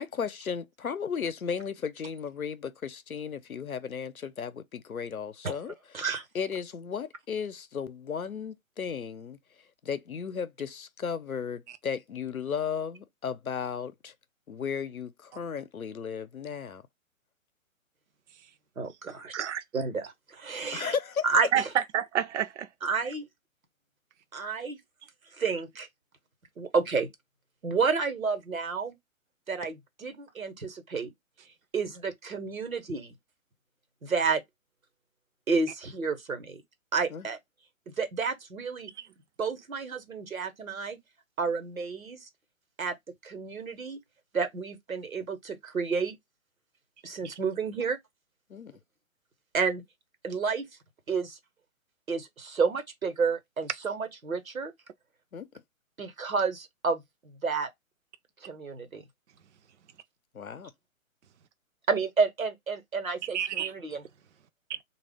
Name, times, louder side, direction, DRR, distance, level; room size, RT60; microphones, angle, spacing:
voice 1, 0.0-6.1 6.3-9.4 9.8-14.1 14.5-16.8 20.7-21.3 37.1-37.3 48.5-48.7 55.3-55.5 60.3-60.7, left 6 dB, 85° left, 0.6 m, -35 dB
voice 2, 5.9-6.2 18.8-19.3 19.7-20.9 21.2-21.7 22.8-23.3 24.3-24.8 25.4-25.9 26.6-27.1 27.6-28.9 29.5-31.1 31.7-33.1 34.0-34.4 35.5-36.6 36.9-37.4 38.0-38.9 39.4-41.0 41.4-42.3 42.8-42.9 43.2-44.0 44.3-46.1 47.0-48.0 49.5-49.8 50.2-50.7 51.1-51.4 52.1-54.7 56.0-57.7 58.4-59.0 61.9-64.0, right 5 dB, 80° right, 1.0 m, -30 dB
voice 3, 19.3-19.6 21.5-22.7 39.0-39.1 63.3-63.7 64.7-64.8, right 9 dB, 60° right, 0.5 m, -29 dB
3.3 x 2.3 x 3.4 m
figure-of-eight pair, 130°, 41 cm